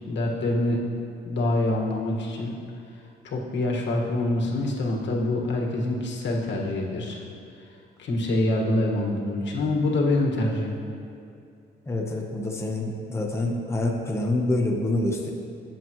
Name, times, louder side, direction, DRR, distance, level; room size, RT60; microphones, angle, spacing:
voice 1, 0.1-0.8 1.2-2.5 3.2-7.2 8.0-10.8, left 1 dB, 65° left, -1 dB, 1.8 m, -25 dB
voice 2, 11.9-15.3, left 1 dB, 15° left, 0 dB, 1.1 m, -26 dB
17.0 x 7.5 x 3.1 m, 2.5 s
cardioid pair, 90°, 20 cm